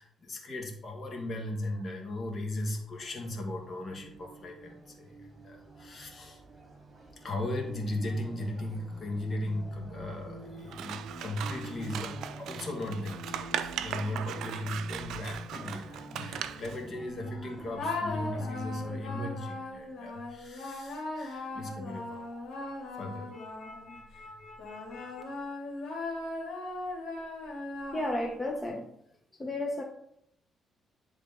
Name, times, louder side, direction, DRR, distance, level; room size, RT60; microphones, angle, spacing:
voice 1, 0.0-6.4 7.2-25.2, left 1 dB, 45° left, 1 dB, 1.8 m, -37 dB
sound 1, 2.1-18.9, right 2 dB, 30° right, 1.9 m, -48 dB
Scissors, 10.7-16.8, right 10 dB, 80° right, 0.3 m, -38 dB
sound 2, 17.8-24.0 24.6-28.5, left 2 dB, 70° left, 2.4 m, -38 dB
voice 2, 27.9-28.9 29.4-29.8, left 1 dB, 15° left, 0 dB, 0.8 m, -32 dB
10.5 x 3.6 x 3.6 m, 0.75 s
cardioid pair, 90°, 0 cm